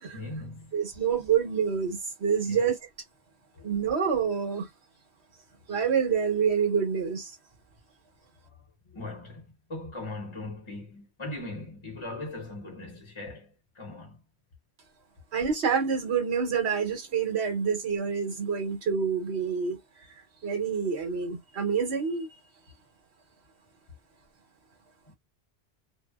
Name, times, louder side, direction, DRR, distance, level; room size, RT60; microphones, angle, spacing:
voice 1, 0.1-0.8 2.4-2.7 3.5-3.9 8.9-14.2, left 2 dB, 30° left, 0.8 m, -40 dB
voice 2, 0.7-2.8 3.6-4.7 5.7-7.3 15.3-19.8 20.4-22.3, right 6 dB, 80° right, 1.3 m, -27 dB
2.6 x 2.1 x 2.2 m
omnidirectional pair, 1.1 m